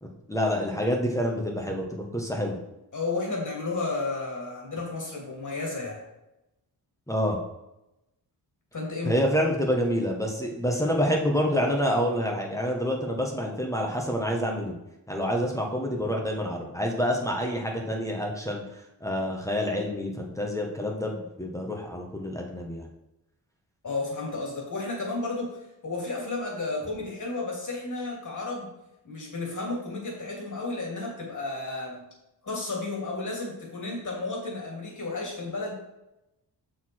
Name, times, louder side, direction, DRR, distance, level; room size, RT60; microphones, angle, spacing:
voice 1, 0.0-2.6 7.1-7.4 9.0-14.7 15.1-18.6 19.0-22.9, equal, 5° left, 0 dB, 1.4 m, -27 dB
voice 2, 2.9-6.0 8.7-9.2 23.8-28.7 29.0-32.0 32.4-35.7, left 3 dB, 45° left, -1 dB, 3.1 m, -32 dB
6.8 x 6.5 x 4.6 m, 0.91 s
wide cardioid pair, 105°, 41 cm